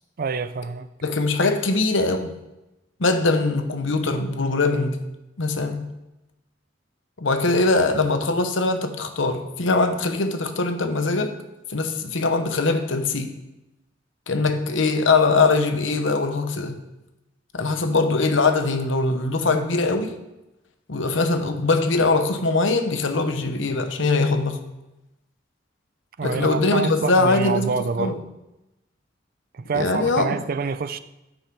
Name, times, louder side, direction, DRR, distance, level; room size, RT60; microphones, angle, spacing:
voice 1, 0.2-0.9 26.2-28.2 29.5-31.0, right 4 dB, 50° right, 0.5 m, -26 dB
voice 2, 1.0-2.3 3.0-5.0 5.4-5.9 7.2-11.3 11.7-13.3 14.3-16.8 17.5-20.2 20.9-24.6 26.2-28.2 29.7-30.4, left 3 dB, 75° left, 1.0 m, -22 dB
10.5 x 6.2 x 4.6 m
head